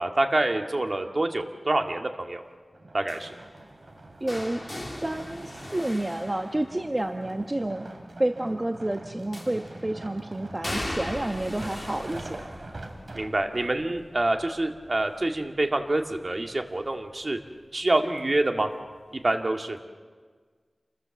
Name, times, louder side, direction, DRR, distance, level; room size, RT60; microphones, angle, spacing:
voice 1, 0.0-2.5 2.9-3.3 13.1-17.4 17.7-18.7 19.1-19.8, right 2 dB, 45° right, 4 dB, 2.1 m, -26 dB
sound 1, 2.7-13.7 14.4-14.5, right 2 dB, 65° right, 3.0 m, -44 dB
sound 2, 3.1-7.1 9.3-9.9 10.6-16.4 16.8-17.2 18.4-18.5, left 1 dB, 20° left, 2.8 m, -40 dB
voice 2, 4.2-4.6 4.9-7.9 8.2-12.4, right 1 dB, 30° right, 5 dB, 1.2 m, -29 dB
28.5 x 22.0 x 7.3 m, 1.5 s
wide cardioid pair, 75°, 0 cm